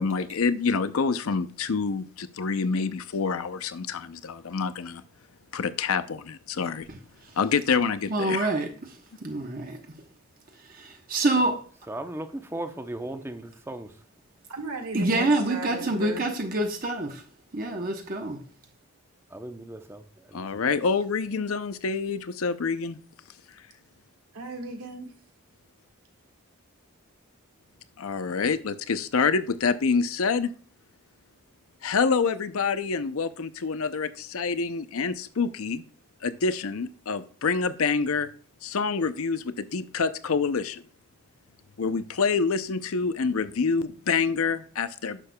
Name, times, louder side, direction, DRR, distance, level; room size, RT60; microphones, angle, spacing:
voice 1, 0.0-5.0 5.5-6.9 7.4-8.5 20.3-23.0 28.0-30.5 31.8-35.9 36.2-38.3 38.6-40.8 41.8-45.3, left 5 dB, 70° left, 0.6 m, -27 dB
voice 2, 8.1-8.9 9.2-9.8 10.7-11.6 14.9-17.2 17.5-18.4, right 2 dB, 40° right, 1.0 m, -26 dB
voice 3, 11.9-13.9 19.3-20.0 20.3-20.4, right 1 dB, 10° right, 0.7 m, -36 dB
voice 4, 14.5-16.2 24.3-25.1, right 3 dB, 85° right, 1.7 m, -36 dB
9.8 x 6.7 x 2.2 m
head